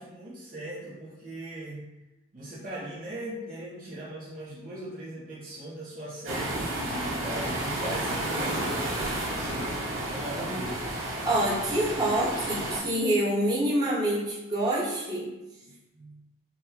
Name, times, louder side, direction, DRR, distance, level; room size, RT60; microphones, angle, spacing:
voice 1, 0.0-1.8 2.3-9.7 10.1-10.8 15.6-16.2, right 1 dB, 40° right, -8 dB, 0.8 m, -39 dB
sound 1, 6.2-12.8, right 1 dB, 70° right, 1.0 m, -31 dB
voice 2, 11.2-15.3, right 1 dB, 20° right, -9 dB, 1.0 m, -26 dB
5.3 x 2.2 x 2.8 m, 1.0 s
head